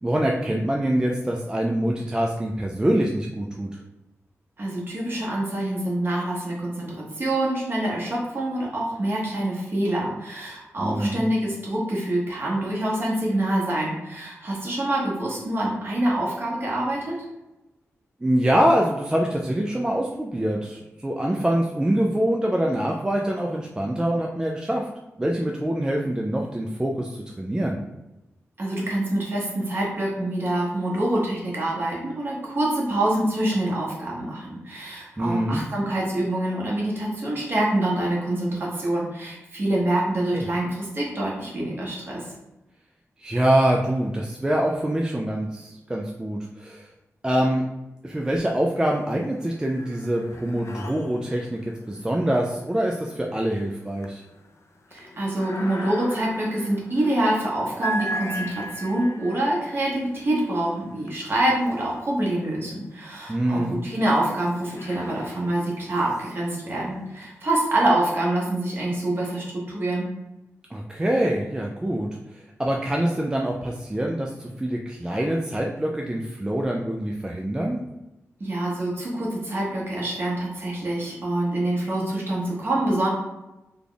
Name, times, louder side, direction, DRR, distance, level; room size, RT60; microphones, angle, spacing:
voice 1, 0.0-3.8 10.8-11.2 18.2-24.9 25.2-27.8 35.2-35.6 40.3-40.5 43.2-46.9 47.2-47.6 48.0-54.2 63.3-63.8 70.7-77.8, right 1 dB, 15° right, 0 dB, 0.3 m, -25 dB
voice 2, 4.6-17.1 28.6-42.3 54.9-70.1 78.4-83.1, right 1 dB, 45° right, -4 dB, 1.2 m, -26 dB
sound 1, 48.2-48.9 49.2-62.4 63.0-67.5, right 1 dB, 65° left, 0.4 m, -39 dB
3.4 x 2.3 x 3.9 m, 0.99 s
wide cardioid pair, 110°, 5 cm